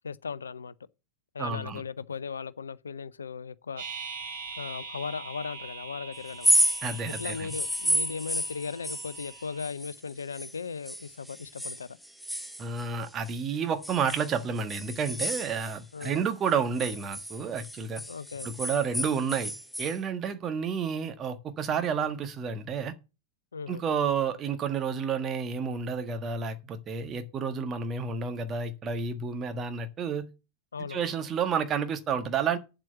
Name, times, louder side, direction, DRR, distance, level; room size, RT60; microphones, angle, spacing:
voice 1, 0.0-0.7 1.3-3.8 4.6-6.5 7.1-12.0 15.9-16.2 18.1-18.5 23.5-23.8 30.7-31.1, left 5 dB, 70° left, 0.5 m, -37 dB
voice 2, 1.4-1.8 6.8-7.5 12.6-18.0 18.4-19.5 19.8-22.9 23.7-30.3 30.9-32.6, right 6 dB, 25° right, 1.5 m, -30 dB
sound 1, 3.8-9.7, right 4 dB, 65° right, 4.3 m, -43 dB
sound 2, 6.3-10.6 10.9-13.4 13.8-16.2 16.5-20.0, equal, ahead, 0.9 m, -31 dB
8.9 x 7.7 x 5.7 m
figure-of-eight pair, 90°, 0 cm